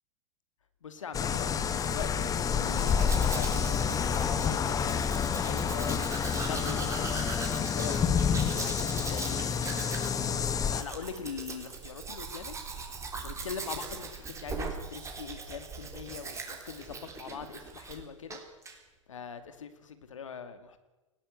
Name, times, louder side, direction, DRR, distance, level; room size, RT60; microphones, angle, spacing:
voice 1, 0.8-6.0 6.3-9.5 10.2-12.5 13.2-18.4 19.1-20.8, left 6 dB, 75° left, 10 dB, 2.4 m, -42 dB
sound 1, 1.1-10.8, left 7 dB, 20° left, 1.5 m, -29 dB
Domestic sounds home sounds, 2.6-18.0 18.3-18.8, right 4 dB, 20° right, 3.8 m, -41 dB
19.0 x 18.0 x 8.2 m, 1.1 s
figure-of-eight pair, 95°, 17 cm